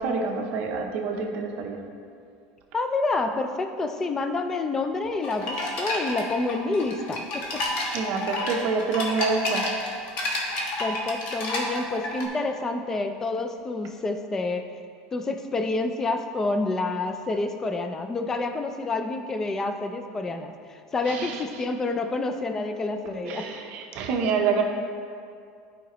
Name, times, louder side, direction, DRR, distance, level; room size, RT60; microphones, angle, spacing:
voice 1, 0.0-1.8 7.9-9.7 21.1-21.4 23.2-24.6, right 5 dB, 45° right, 2 dB, 0.8 m, -27 dB
voice 2, 2.7-7.6 10.8-14.7 15.1-23.5, left 3 dB, 15° left, 7 dB, 0.3 m, -28 dB
sound 1, 5.2-12.2, left 1 dB, 50° left, 1.2 m, -30 dB
12.0 x 5.0 x 3.0 m, 2.3 s
cardioid pair, 175°, 3 cm